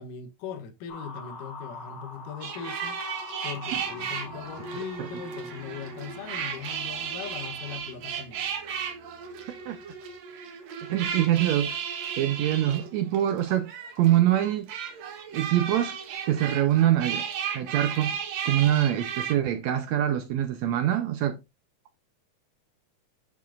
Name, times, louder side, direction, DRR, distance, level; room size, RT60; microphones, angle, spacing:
voice 1, 0.0-3.2 3.4-8.5, left 6 dB, 70° left, 2.5 m, -40 dB
sound 1, 0.9-7.8, left 4 dB, 50° left, 2.4 m, -44 dB
sound 2, 2.4-19.3, right 7 dB, 60° right, 2.1 m, -35 dB
Guitar, 3.6-10.2, equal, 35° left, 3.9 m, -54 dB
voice 2, 10.8-11.8 12.2-13.7 14.0-14.7 15.3-16.0 16.3-17.3 17.5-18.2 18.4-21.4, right 12 dB, 80° right, 1.6 m, -24 dB
9.4 x 5.1 x 2.5 m
omnidirectional pair, 4.1 m